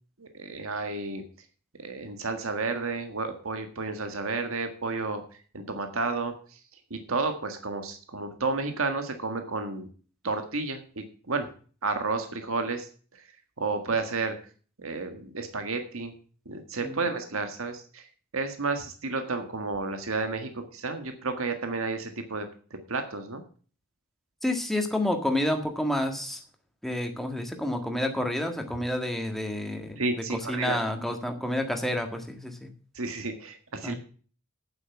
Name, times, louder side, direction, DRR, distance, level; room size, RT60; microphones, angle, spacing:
voice 1, 0.2-1.2 1.8-5.2 5.5-6.3 6.9-9.9 10.2-11.5 11.8-13.2 13.6-14.4 14.8-16.1 16.4-18.0 18.3-22.5 22.9-23.4 30.0-30.8 32.9-33.9, right 3 dB, 70° right, 6 dB, 1.6 m, -31 dB
voice 2, 24.4-26.4 26.8-30.0 30.3-32.7 33.8-33.9, left 1 dB, ahead, 4 dB, 1.7 m, -29 dB
9.2 x 7.9 x 7.1 m, 0.41 s
head